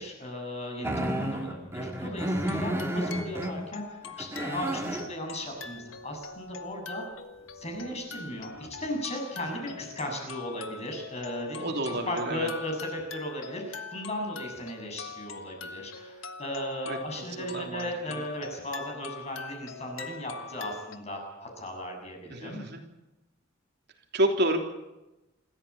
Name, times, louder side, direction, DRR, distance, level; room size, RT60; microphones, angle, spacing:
voice 1, 0.0-7.0 7.5-11.8 12.1-22.6, left 1 dB, 35° left, 2 dB, 7.4 m, -36 dB
sound 1, 0.8-3.5 4.0-5.1 7.9-8.0 8.6-8.9, right 1 dB, 15° right, 2.6 m, -31 dB
sound 2, 2.2-21.0, left 5 dB, 75° left, 1.6 m, -43 dB
voice 2, 2.4-2.8 9.5-9.6 11.5-12.5 16.9-18.2 22.3-22.8 24.1-24.6, right 1 dB, 55° right, 3 dB, 3.3 m, -30 dB
27.5 x 14.0 x 8.8 m, 0.98 s
head